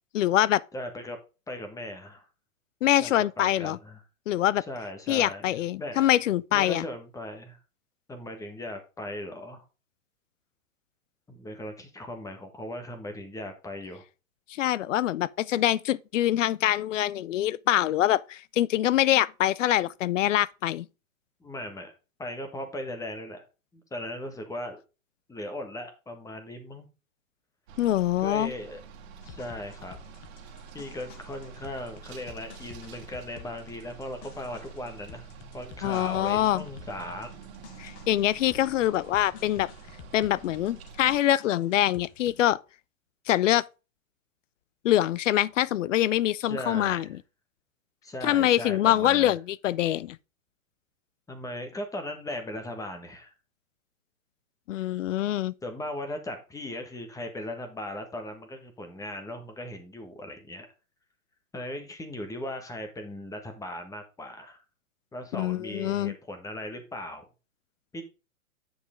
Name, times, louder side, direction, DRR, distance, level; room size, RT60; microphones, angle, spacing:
voice 1, 0.1-0.6 2.8-3.8 4.3-4.6 5.1-6.9 14.5-20.9 27.8-28.5 35.8-36.7 37.8-39.7 40.1-42.6 43.3-43.6 44.8-47.1 48.2-50.2 54.7-55.5 65.3-66.1, left 13 dB, 65° left, 0.6 m, -24 dB
voice 2, 0.7-1.2 1.5-2.2 3.0-4.0 4.6-6.1 6.5-7.6 8.1-9.6 11.3-14.0 21.4-21.9 22.2-23.4 23.7-24.8 25.3-26.9 28.2-28.8 29.2-30.0 30.7-35.3 35.5-37.3 46.4-47.1 48.0-49.3 51.3-53.3 55.6-60.7 61.5-64.6 65.1-67.3 67.9-68.0, left 1 dB, 10° left, 1.4 m, -38 dB
sound 1, 27.7-41.2, right 6 dB, 50° right, 2.1 m, -47 dB
sound 2, 29.2-42.5, left 9 dB, 40° left, 1.2 m, -51 dB
8.0 x 6.4 x 3.7 m
hypercardioid pair, 125°, 41 cm